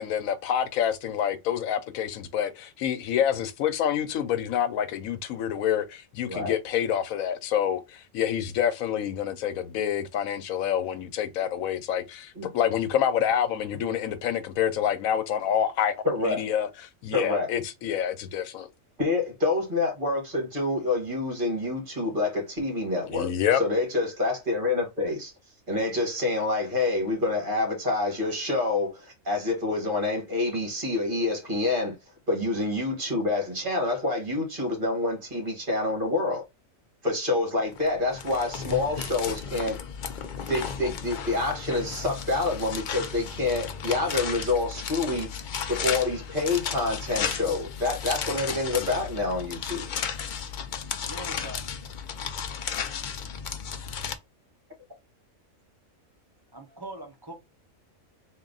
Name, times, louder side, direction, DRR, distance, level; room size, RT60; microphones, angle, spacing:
voice 1, 0.0-15.9 16.2-16.7 17.0-18.7 23.1-23.6, left 9 dB, 90° left, 1.1 m, -27 dB
voice 2, 16.0-16.5 17.1-17.5 19.0-25.3 25.7-32.0 32.3-36.4 37.0-39.8 40.5-45.3 45.7-49.9, left 2 dB, 40° right, 1.8 m, -27 dB
sound 1, 37.7-54.2, left 7 dB, 65° left, 0.5 m, -34 dB
voice 3, 47.2-47.7 51.0-51.7 52.8-53.2 56.5-57.3, right 1 dB, 20° right, 0.8 m, -42 dB
3.6 x 2.6 x 3.8 m
omnidirectional pair, 1.4 m